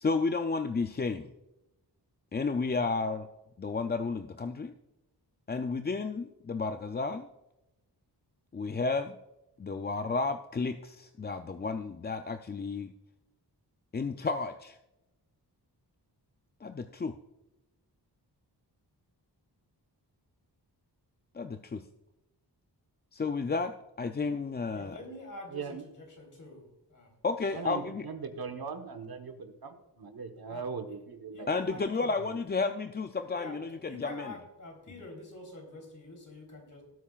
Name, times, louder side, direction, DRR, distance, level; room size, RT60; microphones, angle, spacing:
voice 1, 0.0-1.3 2.3-3.3 3.6-4.7 5.5-7.3 8.5-9.2 9.6-12.9 13.9-14.8 16.6-17.1 21.3-21.8 23.1-25.0 27.2-28.0 31.5-34.3, left 4 dB, 25° left, 7 dB, 0.4 m, -32 dB
voice 2, 24.7-27.1 30.5-30.6 31.3-32.1 33.3-36.8, left 1 dB, 50° left, 1 dB, 3.6 m, -47 dB
voice 3, 25.5-25.8 27.5-31.8 32.1-32.4, right 5 dB, 60° right, 6 dB, 1.2 m, -40 dB
18.0 x 8.4 x 2.4 m, 0.95 s
wide cardioid pair, 140°, 41 cm